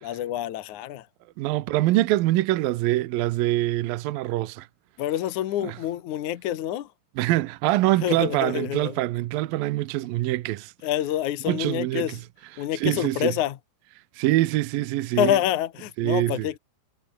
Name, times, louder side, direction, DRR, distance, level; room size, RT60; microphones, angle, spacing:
voice 1, 0.0-1.0 5.0-6.9 8.0-8.9 10.8-12.2 12.6-13.6 15.2-16.6, left 12 dB, 60° left, 2.2 m, -27 dB
voice 2, 1.4-4.7 5.6-5.8 7.2-10.7 11.5-12.2 12.5-13.3 14.2-15.4 16.0-16.5, right 16 dB, 70° right, 2.4 m, -24 dB
omnidirectional pair, 4.8 m